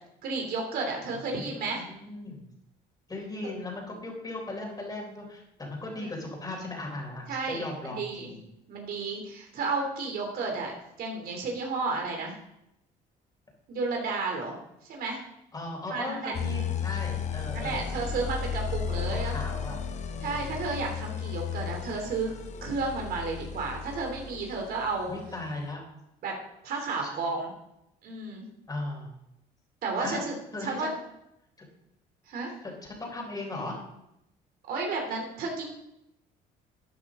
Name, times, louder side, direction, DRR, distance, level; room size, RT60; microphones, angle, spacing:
voice 1, 0.2-1.8 5.9-6.1 7.3-8.3 8.7-12.3 13.7-14.6 14.9-15.2 15.9-16.3 17.5-19.4 20.2-22.3 22.6-25.2 26.2-26.4 26.6-27.5 28.0-28.5 29.8-30.3 30.6-30.9 32.3-32.5 34.7-35.7, right 3 dB, 65° right, 1 dB, 3.0 m, -32 dB
voice 2, 1.1-2.4 3.1-8.4 15.5-17.9 19.1-19.8 20.2-20.6 25.1-25.9 27.0-27.2 28.7-29.1 30.0-30.2 30.5-30.9 32.6-32.7 33.0-33.8, left 2 dB, 25° left, 0 dB, 4.0 m, -37 dB
sound 1, 16.3-25.5, left 7 dB, 45° left, 0.9 m, -34 dB
13.0 x 9.2 x 3.7 m, 0.84 s
cardioid pair, 110°, 17 cm